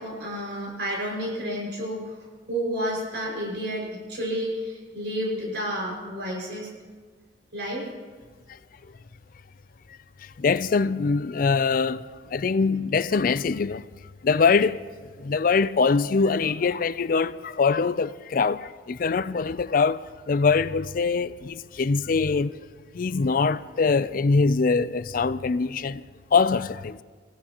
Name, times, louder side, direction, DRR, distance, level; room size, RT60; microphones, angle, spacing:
voice 1, 0.0-2.2 2.5-6.7 7.5-7.8, equal, 65° right, 5.7 m, -30 dB
voice 2, 10.4-12.0 12.3-13.8 14.2-14.9 15.2-20.0 20.3-22.5 22.9-26.0 26.3-27.0, left 4 dB, 50° left, 0.4 m, -23 dB
27.5 x 16.5 x 3.0 m
head